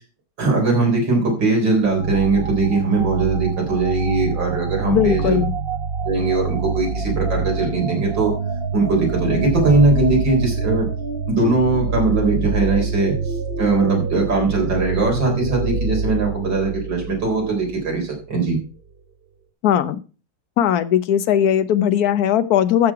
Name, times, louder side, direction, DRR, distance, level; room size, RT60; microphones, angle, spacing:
voice 1, 0.4-5.4 6.0-8.3 8.7-10.9 11.3-13.2 13.6-18.6, right 3 dB, 75° right, 0 dB, 4.6 m, -20 dB
sound 1, 1.8-18.2, right 4 dB, 45° right, 0.8 m, -26 dB
voice 2, 4.8-5.5 19.6-20.0 20.6-22.9, left 10 dB, 60° left, 12 dB, 1.2 m, -18 dB
13.5 x 6.6 x 4.7 m, 0.35 s
omnidirectional pair, 2.0 m